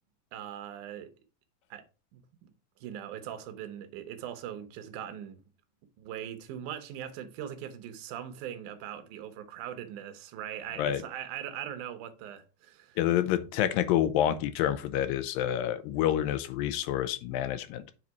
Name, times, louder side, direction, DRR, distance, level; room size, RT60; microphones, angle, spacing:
voice 1, 0.3-1.1 1.7-1.8 2.1-2.5 2.8-5.4 6.0-13.0, right 10 dB, 70° right, 2.2 m, -40 dB
voice 2, 13.0-17.9, left 11 dB, 80° left, 2.3 m, -28 dB
7.5 x 4.1 x 4.6 m
omnidirectional pair, 4.2 m